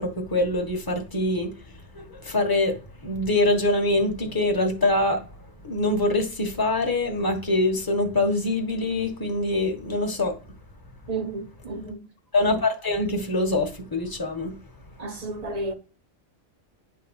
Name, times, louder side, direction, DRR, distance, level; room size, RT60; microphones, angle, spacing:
voice 1, 0.0-1.5 1.9-2.8 3.0-5.2 5.6-10.3 12.3-14.5, left 2 dB, 20° left, 1.4 m, -24 dB
voice 2, 11.1-12.1 15.0-15.7, right 2 dB, 35° right, 1.0 m, -32 dB
10.5 x 3.7 x 6.3 m
omnidirectional pair, 1.3 m